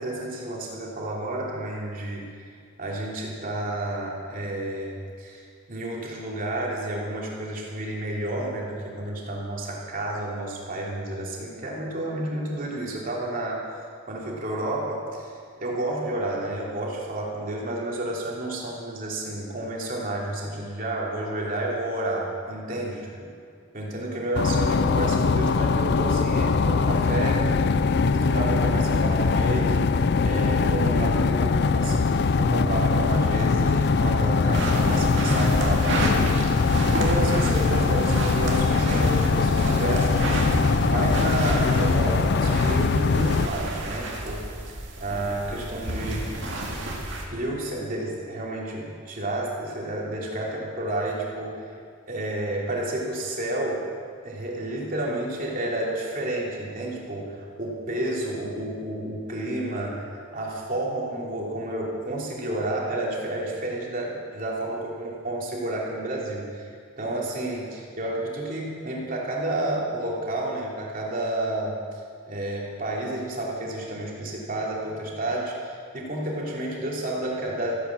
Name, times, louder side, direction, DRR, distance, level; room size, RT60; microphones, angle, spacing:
voice 1, 0.0-2.3 2.8-13.6 14.1-23.3 23.7-27.4 28.1-29.9 30.2-40.3 40.8-46.4 47.3-51.7 52.1-53.8 54.2-72.0 72.3-77.7, right 1 dB, 40° right, -3 dB, 3.0 m, -30 dB
sound 1, 24.4-43.5, left 4 dB, 55° left, 0.4 m, -22 dB
sound 2, 34.5-47.2, right 1 dB, 60° right, 2.3 m, -30 dB
14.5 x 10.0 x 7.4 m, 2.2 s
head